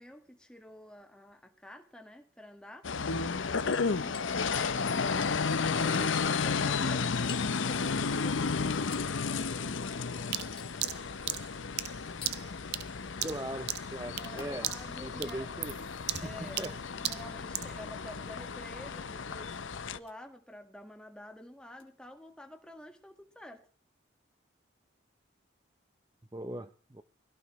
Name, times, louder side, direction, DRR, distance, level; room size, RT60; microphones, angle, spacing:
voice 1, 0.0-3.2 3.6-10.6 14.0-15.5 16.2-19.5 19.9-23.7, left 1 dB, 5° left, 1.7 m, -49 dB
sound 1, 2.8-20.0, left 5 dB, 85° left, 0.7 m, -33 dB
Hammer, 3.7-4.3 4.6-4.7 5.2-5.4 5.9-6.1 7.3-7.6 8.9-9.1 10.6-10.8 12.2-12.4 14.4-14.5 16.0-16.8 17.5-17.7 18.9-19.1 20.0-20.2 21.8-21.9, left 5 dB, 25° left, 2.3 m, -48 dB
sound 2, 10.3-14.4 14.6-15.0 15.2-17.8, right 13 dB, 60° right, 0.7 m, -36 dB
voice 2, 13.2-14.7 15.0-15.8 16.2-16.7 26.3-27.0, right 1 dB, 20° right, 0.6 m, -40 dB
21.5 x 16.5 x 3.2 m
head